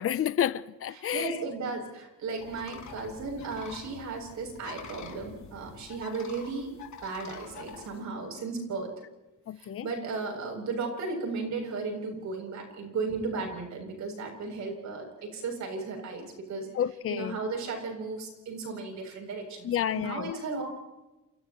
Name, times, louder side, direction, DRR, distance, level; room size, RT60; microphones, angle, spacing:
voice 1, 0.0-1.4 9.5-9.9 16.7-17.4 19.6-20.4, left 10 dB, 45° left, 0.7 m, -30 dB
voice 2, 0.9-8.9 9.6-16.7 17.1-20.8, right 4 dB, 65° right, 7.8 m, -35 dB
sound 1, 2.4-8.0, left 6 dB, 60° left, 3.3 m, -47 dB
30.0 x 28.5 x 3.1 m
cardioid pair, 140°, 31 cm